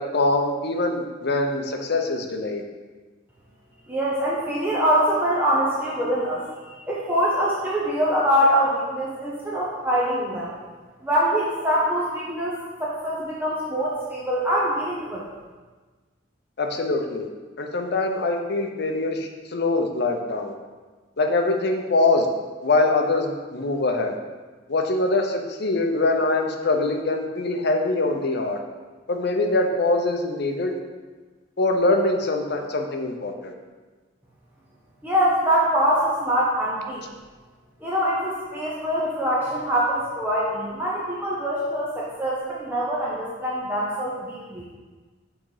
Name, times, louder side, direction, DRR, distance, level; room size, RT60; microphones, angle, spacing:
voice 1, 0.0-2.6 16.6-17.3 17.6-20.5 21.2-22.3 22.6-24.1 24.7-28.6 29.1-30.7 31.6-33.5, left 2 dB, 55° left, 3 dB, 0.7 m, -23 dB
voice 2, 3.9-10.5 11.0-15.2 35.0-37.1 37.8-44.6, equal, 10° right, -7 dB, 0.7 m, -24 dB
6.3 x 3.8 x 4.8 m, 1.4 s
head